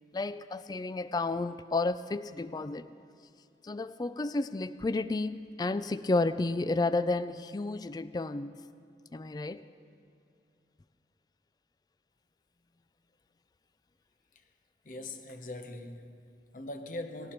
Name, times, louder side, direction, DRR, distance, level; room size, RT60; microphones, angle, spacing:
voice 1, 0.1-2.9 3.6-8.6 9.1-9.6, left 2 dB, 20° left, 0.3 m, -31 dB
voice 2, 14.8-17.3, left 1 dB, 45° left, 0.9 m, -42 dB
19.0 x 16.5 x 4.4 m
head